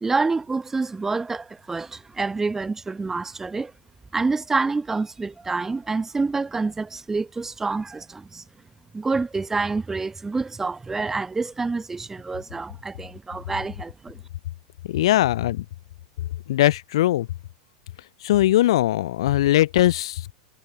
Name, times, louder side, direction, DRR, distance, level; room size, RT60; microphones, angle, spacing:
voice 1, 0.0-3.7 4.1-8.4 8.9-14.2, right 3 dB, 10° right, 0.8 m, -27 dB
voice 2, 14.8-15.7 16.5-17.3 18.2-20.3, left 14 dB, 60° left, 0.4 m, -20 dB
figure-of-eight pair, 90°, 3 cm